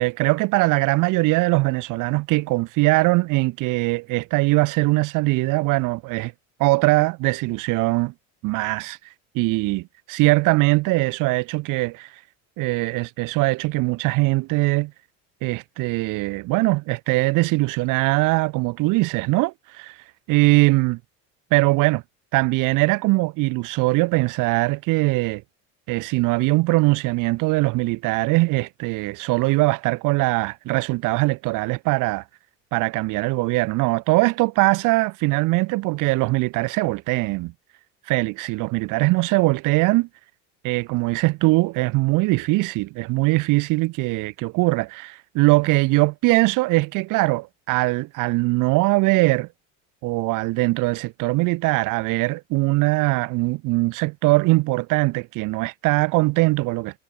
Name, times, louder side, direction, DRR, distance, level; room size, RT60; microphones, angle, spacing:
voice 1, 0.0-6.3 6.6-8.1 8.4-9.0 9.3-12.1 12.6-14.9 15.4-19.9 20.3-21.0 21.5-22.0 22.3-25.4 25.9-32.2 32.7-37.5 38.1-40.1 40.6-49.5 50.0-57.0, right 22 dB, 65° right, 7.8 m, -21 dB
cardioid pair, 135°, 34 cm